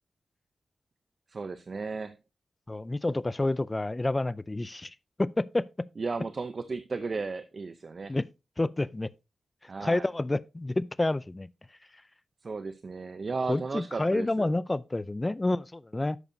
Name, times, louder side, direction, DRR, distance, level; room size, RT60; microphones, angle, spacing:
voice 1, 1.3-2.2 6.0-8.2 9.7-10.1 12.4-14.5, right 4 dB, 50° right, 0.6 m, -35 dB
voice 2, 2.7-5.9 8.1-8.3 8.6-9.1 9.8-11.5 13.5-16.2, left 2 dB, 25° left, 0.4 m, -29 dB
11.0 x 6.7 x 2.7 m
cardioid pair, 70°, 0 cm